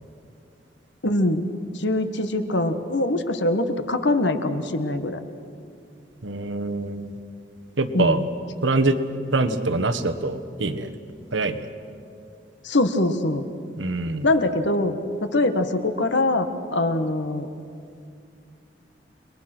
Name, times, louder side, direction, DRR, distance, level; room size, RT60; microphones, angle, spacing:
voice 1, 1.0-1.5 1.7-5.2 7.9-8.3 12.6-13.5 14.2-17.5, left 2 dB, 80° left, 8 dB, 1.5 m, -23 dB
voice 2, 6.2-7.1 7.8-8.2 8.6-9.0 9.3-10.9 11.3-11.7 13.8-14.3, right 3 dB, 90° right, 10 dB, 1.4 m, -24 dB
29.5 x 21.5 x 6.2 m, 2.4 s
head